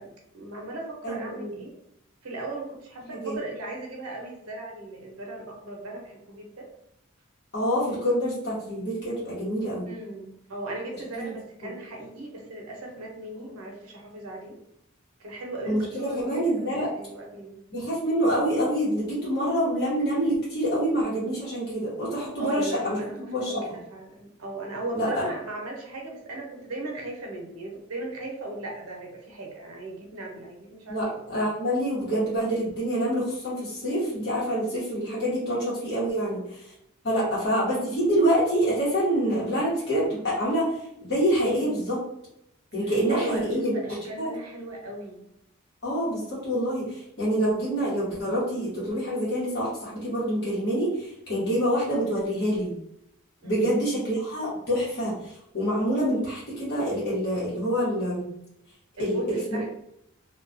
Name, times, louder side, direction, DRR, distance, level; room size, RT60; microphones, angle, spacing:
voice 1, 0.0-1.7 2.2-6.7 9.9-14.6 15.2-17.6 22.4-31.2 37.2-37.4 42.8-45.2 53.4-53.7 59.0-59.7, right 2 dB, 80° right, 0 dB, 0.7 m, -37 dB
voice 2, 1.0-1.6 3.1-3.4 7.5-9.9 11.2-11.3 11.6-11.7 15.7-16.9 17.7-23.0 23.3-23.6 24.9-25.2 30.9-36.6 37.0-40.7 41.0-42.0 42.7-43.7 44.2-44.3 45.8-52.7 53.4-55.1 55.5-58.3 59.0-59.6, equal, 50° left, -9 dB, 1.0 m, -26 dB
2.3 x 2.2 x 2.5 m, 0.78 s
head